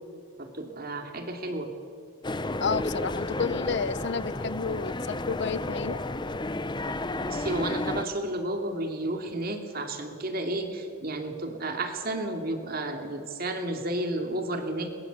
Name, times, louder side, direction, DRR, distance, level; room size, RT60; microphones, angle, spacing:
voice 1, 0.4-1.7 7.2-14.9, right 1 dB, 45° right, 5 dB, 2.7 m, -32 dB
sound 1, 2.2-8.0, left 2 dB, 20° left, 0.7 m, -32 dB
voice 2, 2.6-6.0, left 5 dB, 55° left, 17 dB, 0.6 m, -31 dB
22.5 x 21.0 x 8.2 m, 2.3 s
head